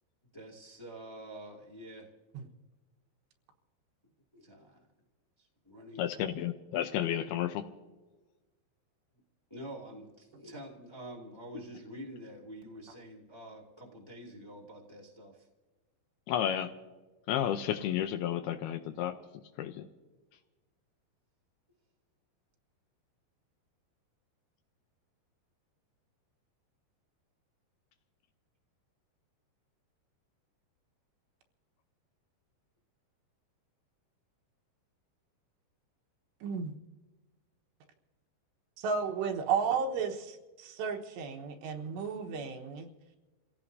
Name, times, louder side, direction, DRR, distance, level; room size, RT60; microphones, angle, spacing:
voice 1, 0.3-2.1 4.3-4.8 5.4-6.2 9.5-15.5, right 1 dB, 10° left, -2 dB, 1.2 m, -47 dB
voice 2, 6.0-7.6 16.3-16.7 17.3-19.1 19.6-19.9, left 10 dB, 80° left, 8 dB, 2.5 m, -32 dB
voice 3, 36.4-36.8 38.8-42.9, right 6 dB, 85° right, 3 dB, 3.4 m, -33 dB
29.0 x 16.5 x 2.7 m, 1.2 s
omnidirectional pair, 4.9 m